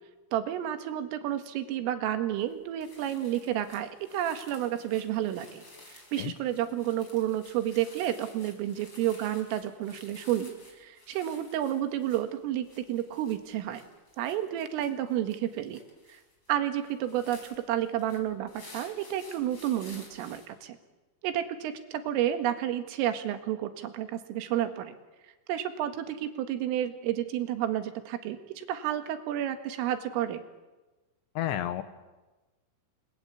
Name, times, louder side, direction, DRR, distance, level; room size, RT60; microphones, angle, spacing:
voice 1, 0.3-5.6 6.1-13.8 14.2-15.8 16.1-16.2 16.5-20.8 21.2-25.0 25.5-30.4, right 11 dB, 80° right, 8 dB, 4.3 m, -31 dB
sound 1, 2.4-2.5 2.8-20.5, left 2 dB, 25° left, 5.3 m, -53 dB
voice 2, 31.4-31.8, left 12 dB, 70° left, 11 dB, 3.1 m, -30 dB
30.0 x 22.0 x 8.3 m, 1.2 s
omnidirectional pair, 5.8 m